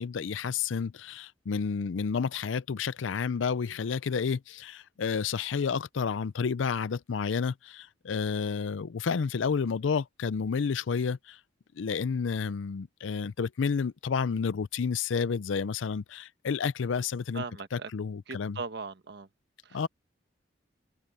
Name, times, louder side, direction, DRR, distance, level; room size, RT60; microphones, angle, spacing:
voice 1, 0.0-11.4 11.8-17.4 17.7-18.6 19.7-19.9, left 6 dB, 80° left, 0.5 m, -30 dB
voice 2, 17.3-17.9 18.3-19.3 19.6-19.8, right 4 dB, 60° right, 1.3 m, -39 dB
head